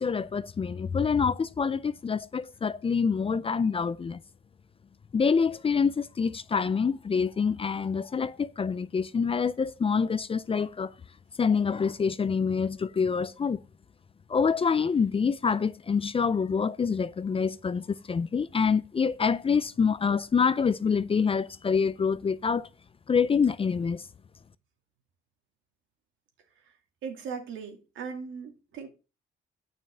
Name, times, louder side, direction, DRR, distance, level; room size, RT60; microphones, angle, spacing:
voice 1, 0.0-4.2 5.1-10.9 11.4-13.6 14.3-22.7 23.1-24.0, left 5 dB, 30° left, 0.5 m, -26 dB
voice 2, 27.0-28.9, right 6 dB, 80° right, 2.4 m, -38 dB
9.2 x 6.0 x 5.5 m
cardioid pair, 90°, 20 cm